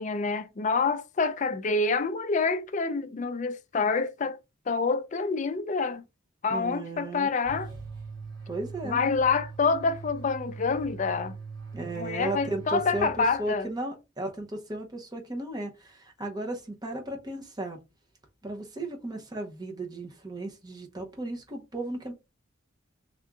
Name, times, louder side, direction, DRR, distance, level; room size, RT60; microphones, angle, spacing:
voice 1, 0.0-4.4 4.7-6.0 6.4-7.7 8.8-11.4 12.0-13.7, left 4 dB, 35° left, 0.4 m, -27 dB
voice 2, 6.5-7.3 8.5-9.1 11.7-17.8 18.4-22.1, right 2 dB, 20° right, 0.8 m, -35 dB
sound 1, 7.5-13.6, right 4 dB, 70° right, 2.5 m, -41 dB
3.6 x 2.6 x 3.5 m
head